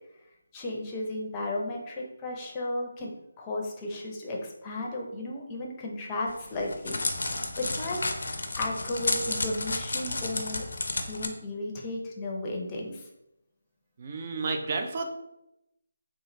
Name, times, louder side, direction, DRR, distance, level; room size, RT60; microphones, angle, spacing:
voice 1, 0.5-10.6 11.1-13.0, left 2 dB, 20° left, -1 dB, 0.6 m, -34 dB
Crackle, 6.3-11.3, left 2 dB, 65° left, 0.5 m, -31 dB
voice 2, 14.0-15.1, right 3 dB, 40° right, 5 dB, 0.5 m, -31 dB
3.8 x 2.4 x 3.1 m, 0.87 s
figure-of-eight pair, 155°, 0 cm